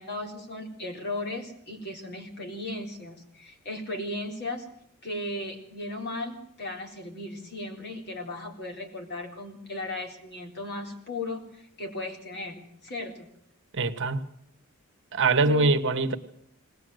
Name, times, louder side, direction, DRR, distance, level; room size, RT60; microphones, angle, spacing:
voice 1, 0.0-4.7 5.0-13.3 15.4-15.6, left 2 dB, 50° left, 3 dB, 3.9 m, -36 dB
voice 2, 13.7-14.2 15.1-16.2, right 3 dB, 55° right, 9 dB, 1.4 m, -23 dB
20.5 x 19.0 x 7.9 m, 0.69 s
head